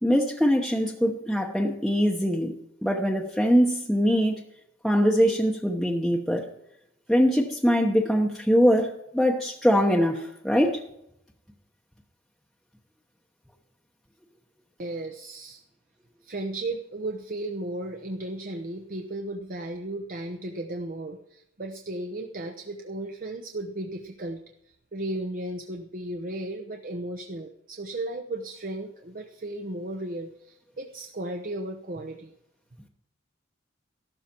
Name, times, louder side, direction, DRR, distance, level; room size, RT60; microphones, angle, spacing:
voice 1, 0.0-2.5 2.8-4.4 4.8-6.5 7.1-10.8, equal, ahead, -1 dB, 1.0 m, -22 dB
voice 2, 14.8-15.6 16.2-24.4 24.9-32.3, right 1 dB, 45° right, 4 dB, 0.9 m, -35 dB
14.0 x 12.5 x 4.5 m, 0.78 s
head